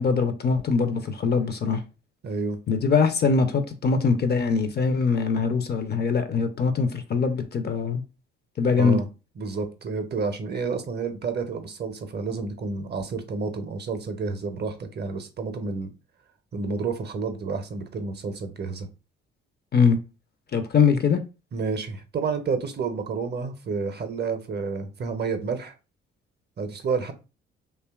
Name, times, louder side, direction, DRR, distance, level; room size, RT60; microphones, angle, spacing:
voice 1, 0.0-1.8 2.7-8.0 8.6-9.0 19.7-20.0 20.5-21.2, left 5 dB, 35° left, 0.4 m, -22 dB
voice 2, 2.2-2.6 8.7-9.1 9.4-15.9 16.5-18.9 21.5-25.7 26.6-27.1, right 4 dB, 35° right, 0.5 m, -30 dB
2.7 x 2.2 x 2.3 m
hypercardioid pair, 45°, 30 cm